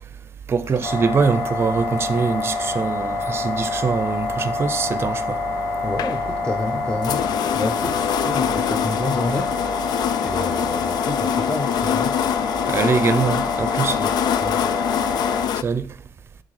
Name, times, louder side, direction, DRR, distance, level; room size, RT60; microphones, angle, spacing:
voice 1, 0.5-5.4 12.7-14.0 15.6-15.9, right 5 dB, 30° right, 0.6 m, -23 dB
sound 1, 0.7-15.6, left 10 dB, 65° left, 0.4 m, -27 dB
sound 2, 0.8-15.5, left 3 dB, 45° left, 1.9 m, -27 dB
voice 2, 5.8-12.2 13.9-14.7, left 2 dB, 10° left, 0.7 m, -29 dB
9.4 x 4.1 x 4.8 m
cardioid pair, 135°, 8 cm